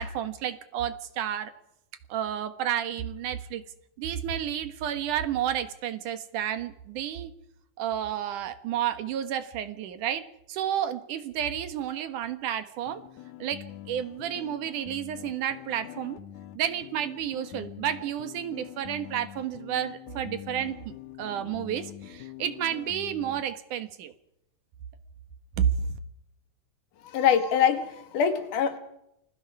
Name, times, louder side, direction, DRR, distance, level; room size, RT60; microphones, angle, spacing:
voice 1, 0.0-1.5 2.1-3.6 4.0-7.3 7.8-13.0 13.4-16.2 16.6-24.1 25.6-26.0, right 10 dB, 80° right, 10 dB, 3.0 m, -31 dB
sound 1, 12.9-23.5, left 12 dB, 70° left, 2.3 m, -44 dB
voice 2, 27.0-28.8, left 8 dB, 85° left, 8 dB, 3.5 m, -24 dB
28.5 x 22.0 x 4.8 m, 0.81 s
omnidirectional pair, 3.6 m